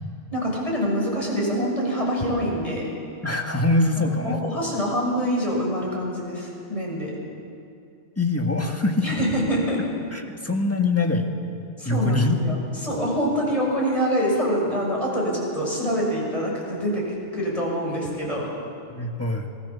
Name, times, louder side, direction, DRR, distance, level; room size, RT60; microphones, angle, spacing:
voice 1, 0.3-2.9 3.9-7.1 9.0-9.8 11.8-12.6 12.8-17.1 17.3-18.5, equal, 30° left, -3 dB, 6.6 m, -25 dB
voice 2, 3.2-4.4 8.2-9.1 10.1-11.3 11.9-12.4 18.9-19.5, left 2 dB, 10° left, 2 dB, 2.0 m, -23 dB
27.0 x 20.0 x 7.2 m, 2.5 s
omnidirectional pair, 1.3 m